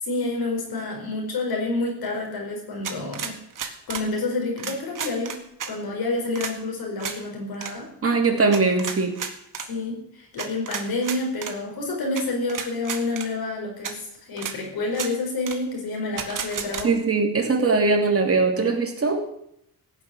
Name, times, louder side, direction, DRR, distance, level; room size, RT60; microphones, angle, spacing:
voice 1, 0.0-3.4 3.9-5.4 5.7-7.9 9.7-17.0, left 2 dB, 90° left, 1 dB, 4.8 m, -28 dB
sound 1, 2.8-4.1 4.6-5.7 6.4-6.5 7.0-7.2 7.5-7.7 8.5-9.7 10.4-11.5 12.2-12.3 12.5-13.3 13.8-13.9 14.4-14.6 14.9-15.1 15.5-15.6 16.2-16.9, right 7 dB, 60° right, 1.9 m, -32 dB
voice 2, 8.0-9.2 16.8-19.2, right 4 dB, 40° right, 2 dB, 3.0 m, -21 dB
15.5 x 6.7 x 9.5 m, 0.75 s
cardioid pair, 95°, 36 cm